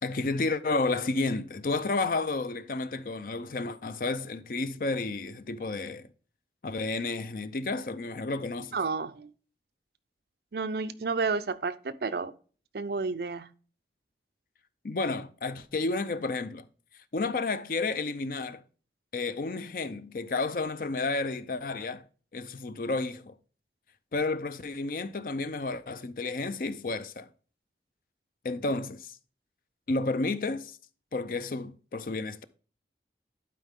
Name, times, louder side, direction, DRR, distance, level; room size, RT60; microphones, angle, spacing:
voice 1, 0.0-6.1 6.6-8.8 14.8-16.7 17.1-18.6 19.1-22.0 22.3-23.4 24.1-27.3 28.4-29.2 29.9-30.8 31.1-32.4, left 3 dB, 50° left, 0.5 m, -31 dB
voice 2, 8.7-9.3 10.5-12.3 12.7-13.5, right 4 dB, 60° right, 0.5 m, -31 dB
11.5 x 4.6 x 3.6 m
head